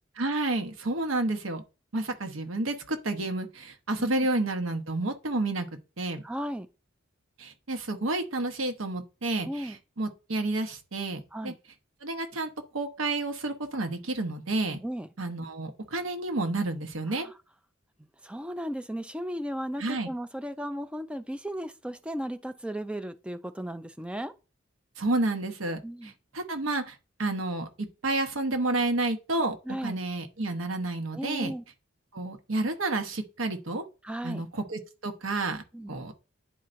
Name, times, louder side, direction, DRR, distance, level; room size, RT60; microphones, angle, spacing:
voice 1, 0.2-1.6 1.9-5.7 6.0-6.2 7.4-11.5 12.0-14.8 15.2-17.3 19.8-20.1 25.0-27.7 28.0-29.6 29.8-31.5 32.1-33.8 34.2-35.6 35.9-36.1, right 2 dB, 85° right, 1.0 m, -30 dB
voice 2, 6.2-6.7 9.4-9.8 11.3-11.6 14.8-15.1 17.1-17.3 18.2-24.3 25.8-26.1 29.7-30.0 31.1-31.6 34.0-34.5 35.7-35.9, equal, 5° right, 0.4 m, -35 dB
10.5 x 4.3 x 2.6 m
head